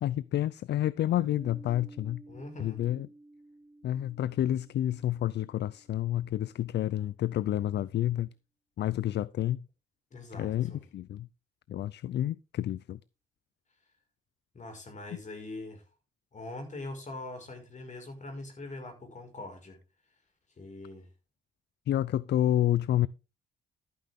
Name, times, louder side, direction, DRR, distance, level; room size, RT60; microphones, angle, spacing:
voice 1, 0.0-2.2 2.6-3.1 3.8-8.3 8.8-9.6 10.3-11.3 11.7-13.0 21.9-23.1, left 12 dB, 60° left, 0.5 m, -29 dB
Piano, 1.2-6.6, right 2 dB, 15° right, 1.2 m, -53 dB
voice 2, 2.3-2.8 10.1-10.8 14.5-15.8 16.3-19.8 20.6-21.1, left 2 dB, 40° left, 5.7 m, -42 dB
13.0 x 9.4 x 3.7 m
cardioid pair, 90°, 20 cm